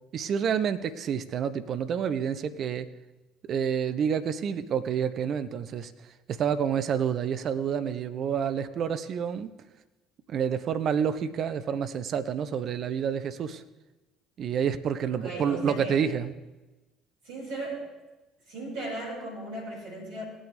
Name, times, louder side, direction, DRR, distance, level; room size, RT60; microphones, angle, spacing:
voice 1, 0.1-2.9 3.4-5.9 6.3-9.5 10.3-13.6 14.4-16.3, right 7 dB, 45° right, 11 dB, 0.6 m, -28 dB
voice 2, 15.1-16.1 17.2-17.9 18.5-20.2, right 2 dB, 65° right, -4 dB, 4.8 m, -37 dB
18.5 x 8.9 x 3.3 m, 1.1 s
figure-of-eight pair, 55°, 0 cm